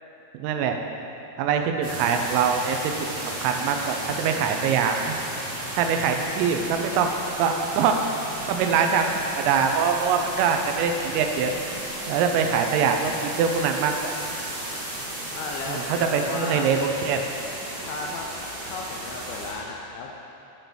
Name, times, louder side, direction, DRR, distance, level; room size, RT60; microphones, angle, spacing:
voice 1, 0.4-0.8 1.4-2.9 3.4-5.2 5.8-7.1 7.4-7.9 8.5-9.1 9.4-11.5 12.1-14.1 15.7-17.3, right 6 dB, 85° right, 4 dB, 3.3 m, -23 dB
sound 1, 1.8-19.5, right 1 dB, 55° right, 3.3 m, -34 dB
voice 2, 15.3-16.8 17.8-18.3 18.6-20.1, left 4 dB, 80° left, 0 dB, 2.7 m, -35 dB
9.9 x 5.2 x 6.0 m, 2.8 s
omnidirectional pair, 5.8 m